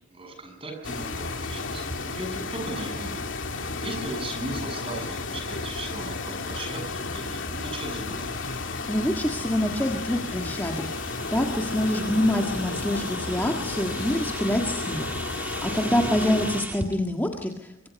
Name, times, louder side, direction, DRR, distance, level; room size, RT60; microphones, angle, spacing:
voice 1, 0.1-3.2 3.5-8.2 15.7-15.9, right 2 dB, 25° right, 4 dB, 7.9 m, -37 dB
sound 1, 0.8-16.6, left 3 dB, 65° left, 2.6 m, -33 dB
sound 2, 8.2-16.9, right 1 dB, 10° right, 1.7 m, -39 dB
voice 2, 8.9-17.7, left 1 dB, 10° left, 1 dB, 1.7 m, -26 dB
25.0 x 24.5 x 5.4 m, 0.84 s
head